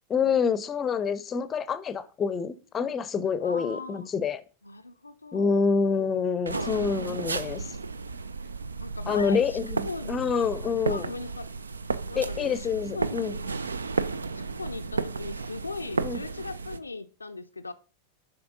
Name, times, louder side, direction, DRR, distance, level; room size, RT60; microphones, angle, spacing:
voice 1, 0.1-4.4 5.3-7.7 9.1-11.1 12.2-13.3 16.0-16.2, left 6 dB, 20° left, 0.6 m, -27 dB
voice 2, 3.4-4.1 4.6-5.6 6.5-6.7 8.8-9.6 9.8-11.5 12.1-12.7 12.9-13.5 14.3-17.7, left 3 dB, 80° left, 0.4 m, -39 dB
sound 1, 6.5-16.8, right 4 dB, 75° right, 0.4 m, -33 dB
7.8 x 5.7 x 3.9 m
figure-of-eight pair, 90°, 0 cm